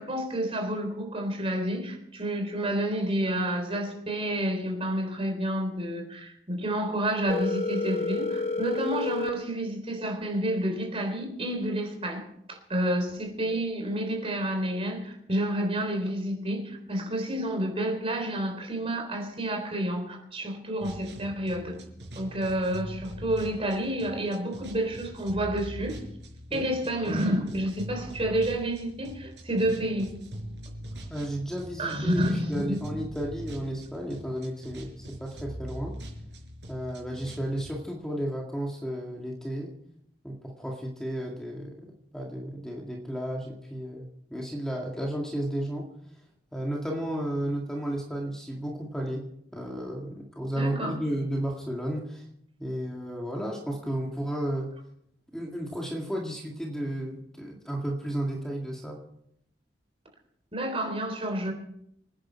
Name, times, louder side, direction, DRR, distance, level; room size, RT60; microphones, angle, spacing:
voice 1, 0.0-12.2 12.5-21.8 22.2-26.0 26.5-30.2 31.8-32.8 50.5-50.9 60.5-61.5, right 1 dB, 35° right, 4 dB, 3.8 m, -29 dB
Telephone, 7.3-9.3, left 3 dB, 40° left, 1.2 m, -29 dB
sound 1, 20.8-37.8, right 1 dB, 80° right, 5.2 m, -42 dB
voice 2, 31.1-36.0 36.7-39.7 40.2-41.9 42.1-45.9 46.5-52.2 52.6-54.7 55.3-59.1, right 1 dB, 5° left, -1 dB, 2.1 m, -33 dB
26.0 x 10.5 x 4.6 m, 0.74 s
head